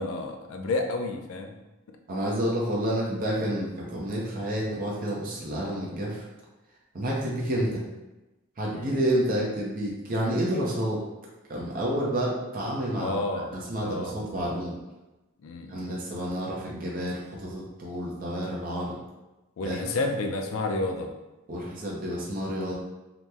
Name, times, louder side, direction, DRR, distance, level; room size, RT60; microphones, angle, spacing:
voice 1, 0.0-1.6 8.7-9.0 13.0-14.2 15.4-16.0 19.6-21.1, left 2 dB, 80° left, 4 dB, 0.4 m, -31 dB
voice 2, 2.1-6.2 6.9-7.8 8.6-11.0 11.5-13.1 13.5-14.8 15.7-19.0 19.6-19.8 21.5-22.7, right 1 dB, 45° right, -4 dB, 0.5 m, -29 dB
2.9 x 2.0 x 3.3 m, 1.1 s
head